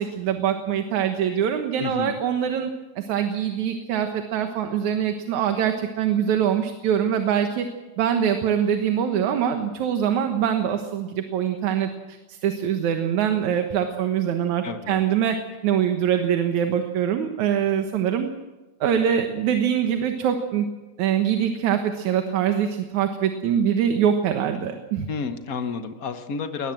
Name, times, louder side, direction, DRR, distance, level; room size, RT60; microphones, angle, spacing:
voice 1, 0.0-2.7 3.0-7.7 8.0-15.4 15.6-18.3 18.8-20.7 21.0-25.1, right 9 dB, 75° right, 6 dB, 2.7 m, -23 dB
voice 2, 1.8-2.2 14.6-15.0 25.1-26.7, left 5 dB, 70° left, 8 dB, 0.8 m, -30 dB
22.0 x 19.0 x 7.6 m, 1.1 s
omnidirectional pair, 3.4 m